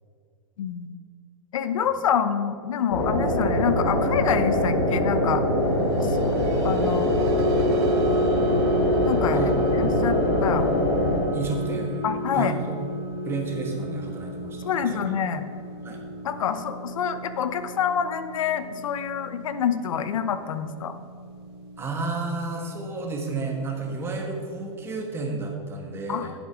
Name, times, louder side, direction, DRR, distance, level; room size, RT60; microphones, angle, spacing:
voice 1, 0.6-0.9 1.5-5.4 5.9-6.2 6.6-7.1 9.0-10.7 12.0-12.5 14.6-15.5 16.2-20.9 26.1-26.3, left 8 dB, 80° left, 11 dB, 0.7 m, -27 dB
sound 1, 2.9-11.2, left 1 dB, 60° left, 2.9 m, -23 dB
sound 2, 5.8-22.2 22.5-22.8 23.2-23.4, equal, 50° right, 1.3 m, -30 dB
voice 2, 11.3-12.1 12.3-12.8 13.2-15.2 15.8-16.1 21.8-26.3, right 3 dB, 15° right, 1 dB, 1.3 m, -31 dB
11.0 x 7.4 x 4.8 m, 2.3 s
hypercardioid pair, 150°, 17 cm